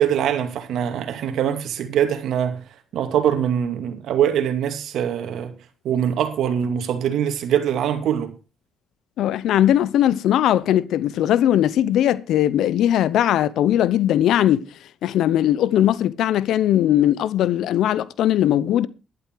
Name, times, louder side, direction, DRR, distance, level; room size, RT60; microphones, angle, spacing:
voice 1, 0.0-2.6 2.9-5.5 5.8-8.3, right 9 dB, 75° right, 2.4 m, -23 dB
voice 2, 9.2-14.6 15.0-18.9, left 11 dB, 80° left, 0.7 m, -19 dB
12.0 x 12.0 x 4.7 m
cardioid pair, 90°, 0 cm